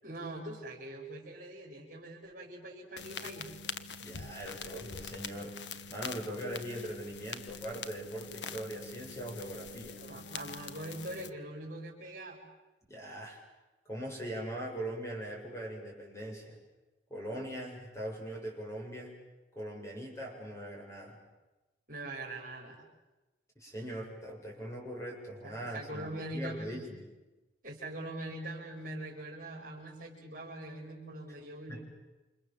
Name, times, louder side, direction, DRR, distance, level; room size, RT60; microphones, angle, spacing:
voice 1, 0.0-3.6 10.0-12.4 21.9-22.8 25.4-26.9 27.6-31.8, right 1 dB, 50° right, -4 dB, 5.4 m, -42 dB
sound 1, 3.0-11.3, left 5 dB, 80° left, 1.2 m, -44 dB
voice 2, 4.0-5.5 5.9-10.0 12.9-13.4 13.9-16.6 17.1-19.1 19.5-21.2 23.6-27.1 31.7-31.8, right 1 dB, 15° left, -1 dB, 7.6 m, -41 dB
29.0 x 27.0 x 7.5 m, 1.1 s
head